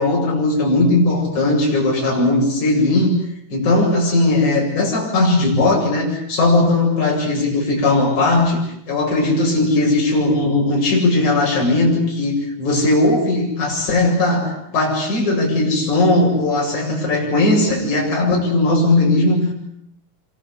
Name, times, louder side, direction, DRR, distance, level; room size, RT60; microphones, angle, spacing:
voice 1, 0.0-19.5, left 2 dB, 55° left, -2 dB, 9.5 m, -18 dB
27.0 x 25.0 x 8.5 m, 0.74 s
omnidirectional pair, 4.1 m